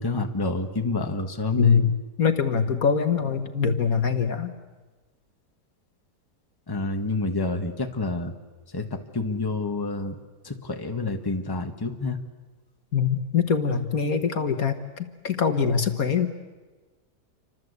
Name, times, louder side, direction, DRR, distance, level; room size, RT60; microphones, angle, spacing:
voice 1, 0.0-1.9 6.7-8.3 8.7-10.2 10.4-12.2, left 3 dB, 15° left, 5 dB, 1.5 m, -28 dB
voice 2, 1.6-1.9 2.2-4.5 12.9-16.4, left 6 dB, 60° left, 8 dB, 1.8 m, -23 dB
28.5 x 25.5 x 8.2 m, 1.3 s
omnidirectional pair, 1.8 m